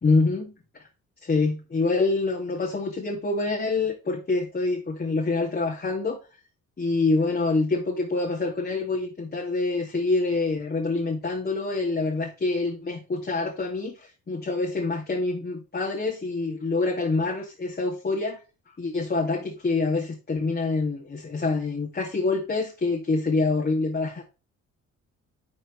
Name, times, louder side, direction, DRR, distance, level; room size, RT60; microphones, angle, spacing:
voice 1, 0.0-0.5 1.2-6.2 6.8-18.4 18.8-24.2, left 3 dB, 30° left, 2.4 m, -26 dB
11.5 x 5.5 x 3.3 m
cardioid pair, 90°, 30 cm